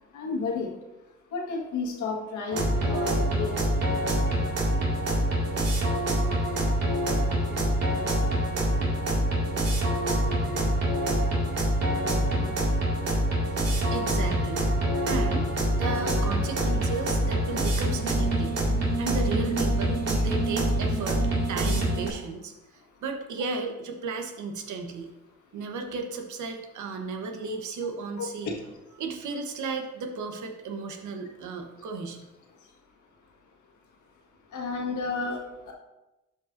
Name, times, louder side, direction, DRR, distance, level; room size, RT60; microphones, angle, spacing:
voice 1, 0.1-0.8 1.3-4.0 28.2-28.7 34.5-35.7, left 4 dB, 75° left, 0 dB, 1.7 m, -32 dB
sound 1, 2.5-22.1, right 1 dB, 55° right, 2.3 m, -25 dB
voice 2, 13.9-14.6 15.1-18.6 19.0-21.2 21.5-22.5 23.0-25.1 25.5-28.5 29.0-32.2, right 4 dB, 75° right, 4 dB, 1.2 m, -34 dB
12.0 x 5.4 x 2.6 m, 1.0 s
cardioid pair, 90°, 30 cm